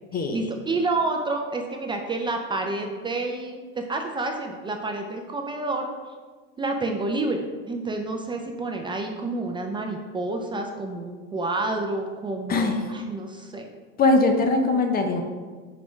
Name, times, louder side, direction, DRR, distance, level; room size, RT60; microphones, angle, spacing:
voice 1, 0.3-5.9 6.6-7.4 7.7-13.7, right 2 dB, 15° right, 3 dB, 0.4 m, -29 dB
voice 2, 12.5-12.8 14.0-15.2, left 3 dB, 30° left, 5 dB, 0.7 m, -21 dB
4.4 x 4.2 x 5.1 m, 1.4 s
supercardioid pair, 120°, 33 cm